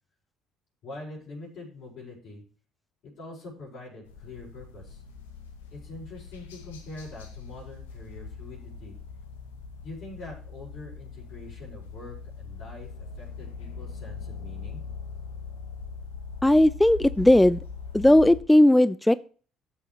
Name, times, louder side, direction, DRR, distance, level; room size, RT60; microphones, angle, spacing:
voice 1, 0.8-2.4 3.0-5.0 5.7-9.0 9.8-14.8, left 2 dB, 60° left, -6 dB, 5.0 m, -44 dB
sound 1, 4.1-18.4, left 5 dB, 90° left, 1.0 m, -41 dB
voice 2, 16.4-17.6 17.9-19.1, left 1 dB, 10° left, 17 dB, 0.3 m, -17 dB
12.5 x 6.9 x 3.0 m, 0.41 s
hypercardioid pair, 55°, 0 cm